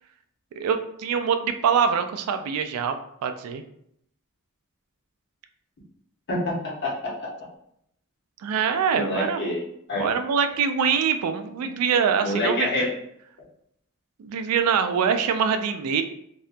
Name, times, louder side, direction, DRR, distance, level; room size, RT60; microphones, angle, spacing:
voice 1, 0.6-3.6 8.4-9.4 10.0-12.7 14.2-16.0, right 6 dB, 70° right, 12 dB, 0.3 m, -24 dB
voice 2, 6.3-7.3 8.9-9.6 9.9-10.1 12.2-12.9, left 1 dB, 50° left, -5 dB, 0.9 m, -27 dB
2.7 x 2.2 x 2.5 m, 0.72 s
head